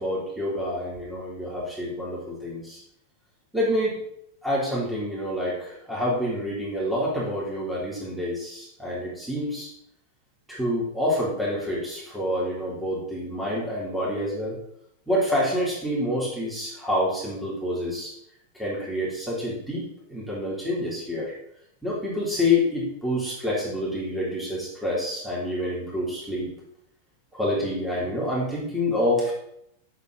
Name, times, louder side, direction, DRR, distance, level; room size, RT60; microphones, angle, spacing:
voice 1, 0.0-2.8 3.5-4.0 4.4-9.7 10.5-14.6 15.1-18.1 18.5-21.3 21.8-26.5 27.3-29.3, left 1 dB, 5° right, -7 dB, 3.5 m, -27 dB
8.0 x 7.2 x 4.0 m, 0.73 s
figure-of-eight pair, 90°, 0 cm